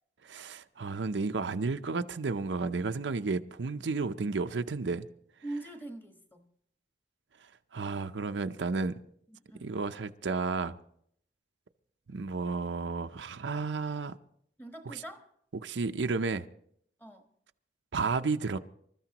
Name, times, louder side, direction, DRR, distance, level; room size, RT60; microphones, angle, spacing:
voice 1, 0.2-5.1 7.7-9.0 9.6-10.8 12.1-14.1 15.6-16.5 17.9-18.6, right 4 dB, 90° right, 0.6 m, -32 dB
voice 2, 5.4-6.5 9.3-9.8 14.6-15.3 17.0-17.3, right 2 dB, 10° left, 1.2 m, -43 dB
26.5 x 13.5 x 2.9 m
head